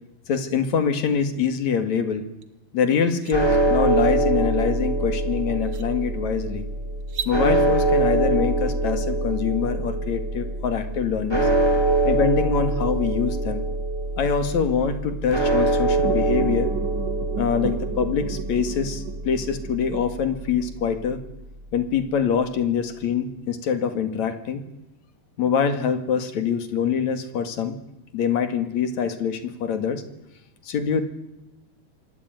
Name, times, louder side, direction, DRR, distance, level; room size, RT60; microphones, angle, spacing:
voice 1, 0.3-2.2 2.7-6.6 7.2-11.5 12.0-13.6 14.2-16.7 17.3-21.2 21.7-24.6 25.4-27.7 28.1-30.0 30.6-31.1, left 7 dB, 50° left, 10 dB, 2.7 m, -24 dB
sound 1, 2.4-2.5 2.9-3.4 5.0-5.1 5.6-5.9 7.0-7.4, right 7 dB, 55° right, 1.5 m, -34 dB
sound 2, 3.3-21.6, right 2 dB, 5° right, 4.5 m, -24 dB
sound 3, 16.0-20.8, right 10 dB, 80° right, 3.7 m, -33 dB
25.0 x 19.0 x 9.3 m, 0.90 s
omnidirectional pair, 5.2 m